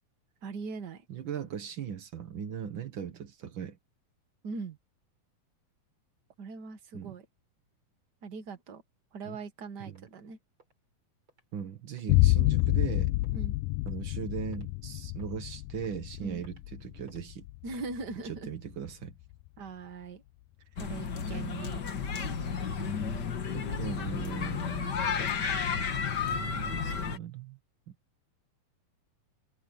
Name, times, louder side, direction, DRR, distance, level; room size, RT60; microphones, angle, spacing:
voice 1, 0.4-1.0 4.4-4.8 6.4-7.2 8.2-8.8 9.1-10.4 13.3-13.6 16.2-16.4 17.6-18.5 19.6-20.2 20.8-21.8, right 4 dB, 50° right, 1.3 m, -40 dB
voice 2, 1.1-3.8 6.9-7.1 9.3-9.4 9.9-10.0 11.5-13.2 13.9-17.4 18.2-19.2 22.8-23.2 23.5-25.1 25.6-25.8 26.3-27.6 27.9-28.0, right 8 dB, 85° right, 1.0 m, -39 dB
sound 1, 10.0-10.1 10.6-10.7 11.3-11.4 12.0-12.1 12.6-12.7 13.2-13.4 13.9-14.2 14.5-14.7 15.2-15.4 15.8-16.0 16.4-16.7 17.1-17.2 17.7-17.9, right 2 dB, 35° right, 7.5 m, -61 dB
sound 2, 12.1-19.5, left 19 dB, 85° left, 1.8 m, -29 dB
sound 3, 20.8-27.2, left 6 dB, 45° left, 1.4 m, -32 dB
omnidirectional pair, 4.2 m